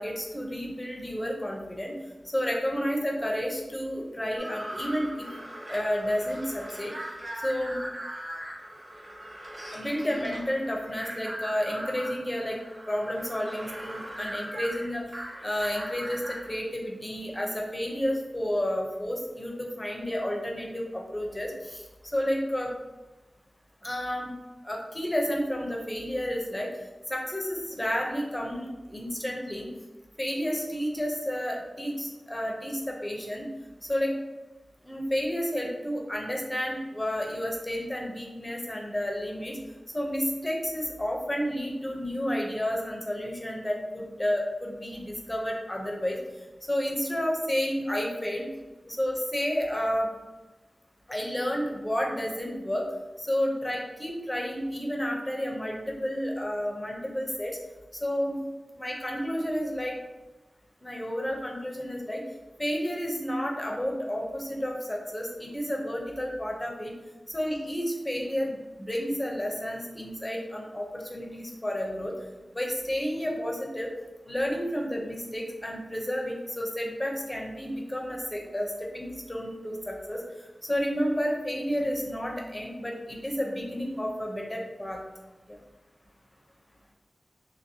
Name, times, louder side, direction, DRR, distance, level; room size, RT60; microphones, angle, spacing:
voice 1, 0.0-2.0 2.3-5.3 5.7-6.9 7.4-7.8 9.7-12.6 12.9-15.0 15.4-21.8 22.1-22.7 23.8-24.3 24.6-26.7 27.1-29.7 30.2-33.5 33.9-34.2 34.8-39.6 39.9-46.2 46.7-48.5 48.9-50.1 51.1-52.9 53.2-57.6 58.0-58.4 58.8-60.0 60.8-62.2 62.6-67.0 67.3-72.1 72.5-73.9 74.3-80.2 80.6-85.0 85.5-85.6, equal, 20° left, 0 dB, 0.7 m, -31 dB
sound 1, 4.4-16.6, right 1 dB, 45° right, 0.8 m, -40 dB
2.9 x 2.6 x 2.7 m, 1.1 s
cardioid pair, 45°, 0 cm